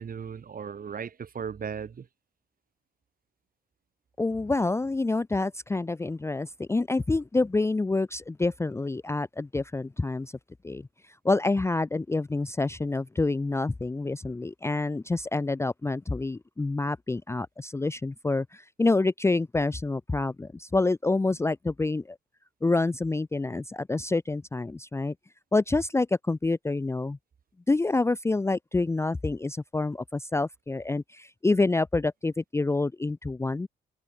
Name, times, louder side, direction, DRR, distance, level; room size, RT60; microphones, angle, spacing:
voice 1, 0.0-2.1, right 7 dB, 45° right, 4.1 m, -36 dB
voice 2, 4.2-10.3 10.6-10.9 11.2-22.2 22.6-25.1 25.5-27.2 27.7-33.7, left 3 dB, 15° left, 0.6 m, -27 dB
cardioid pair, 90°, 20 cm